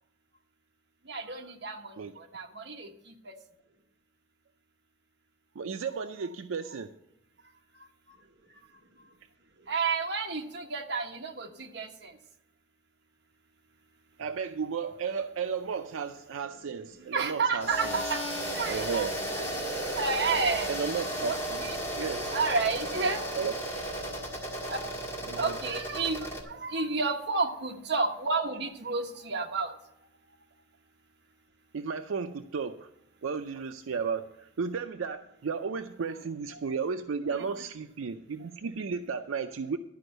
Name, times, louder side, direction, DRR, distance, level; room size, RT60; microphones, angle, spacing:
voice 1, 1.1-3.3 9.7-12.1 17.0-18.2 18.5-19.1 19.3-19.4 20.0-20.7 21.2-21.8 22.3-23.2 24.7-24.8 25.3-29.7, right 4 dB, 55° right, 3 dB, 1.2 m, -31 dB
voice 2, 5.6-6.9 14.2-18.0 18.7-19.1 20.7-21.6 21.9-22.3 23.3-23.5 25.2-25.6 31.7-32.9 33.2-39.8, right 5 dB, 85° right, 8 dB, 0.5 m, -34 dB
sound 1, 17.6-26.4, right 1 dB, 10° left, 1.9 m, -34 dB
11.5 x 5.3 x 7.8 m, 0.85 s
head